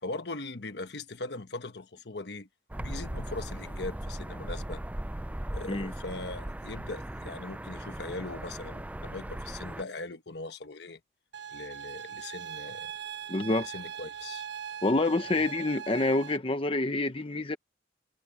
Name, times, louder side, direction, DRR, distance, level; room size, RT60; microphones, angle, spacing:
voice 1, 0.0-2.5 2.8-4.8 5.5-11.0 11.5-12.9 13.6-14.5 15.4-15.5, left 2 dB, 65° left, 1.2 m, -40 dB
sound 1, 2.7-9.8, right 1 dB, 10° right, 0.4 m, -38 dB
sound 2, 11.3-16.4, right 8 dB, 70° right, 1.2 m, -40 dB
voice 2, 13.3-13.7 14.8-17.6, left 2 dB, 30° left, 0.9 m, -27 dB
head